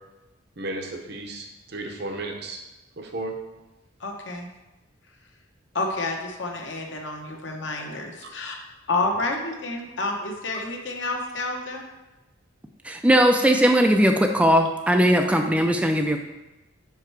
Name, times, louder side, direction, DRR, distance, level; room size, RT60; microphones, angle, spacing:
voice 1, 0.6-2.6 3.0-3.3 10.5-10.6, right 2 dB, 55° right, 3 dB, 0.8 m, -34 dB
voice 2, 4.0-4.5 5.7-8.6 8.9-11.9, left 2 dB, 60° left, 1 dB, 1.0 m, -29 dB
voice 3, 12.8-16.2, equal, 5° right, 4 dB, 0.3 m, -19 dB
5.5 x 4.8 x 4.6 m, 1.1 s
head